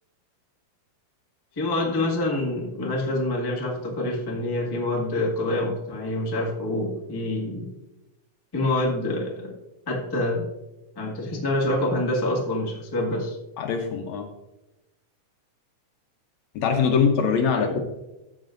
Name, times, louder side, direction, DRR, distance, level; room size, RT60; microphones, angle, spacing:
voice 1, 1.5-7.7 8.5-9.5 9.9-10.5 10.9-13.4 17.5-17.8, left 1 dB, 15° left, -2 dB, 0.7 m, -26 dB
voice 2, 13.6-14.3 16.6-17.8, left 6 dB, 70° left, 4 dB, 1.9 m, -22 dB
14.5 x 7.3 x 2.6 m, 0.99 s
omnidirectional pair, 3.8 m